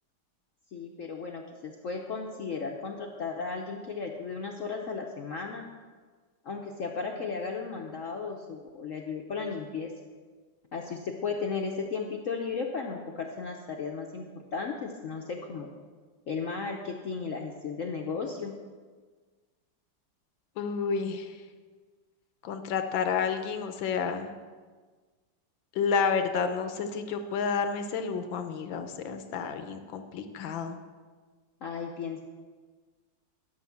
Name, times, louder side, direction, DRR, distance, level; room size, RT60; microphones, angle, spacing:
voice 1, 0.7-5.6 6.4-9.9 10.7-14.2 14.5-15.7 16.3-18.5 31.6-32.2, left 5 dB, 55° left, 1 dB, 0.9 m, -35 dB
voice 2, 20.6-21.4 22.4-24.3 25.7-30.8, left 6 dB, 85° left, 8 dB, 1.6 m, -30 dB
11.5 x 5.7 x 7.2 m, 1.5 s
omnidirectional pair, 2.0 m